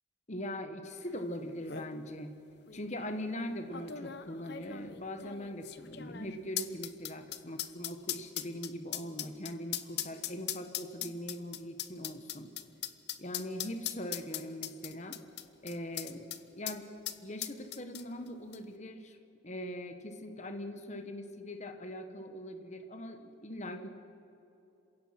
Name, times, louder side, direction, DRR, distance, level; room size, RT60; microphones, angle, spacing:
voice 1, 0.3-2.4 2.7-12.5 13.2-15.2 15.6-16.3 16.6-16.9 17.2-19.2 19.4-23.9, equal, 35° left, 7 dB, 1.3 m, -41 dB
sound 1, 1.2-1.3 1.5-1.9 2.7-2.8 3.7-16.4 16.7-16.8 17.0-18.3 18.5-18.6, left 12 dB, 55° left, 0.8 m, -39 dB
27.0 x 16.5 x 5.9 m, 2.9 s
head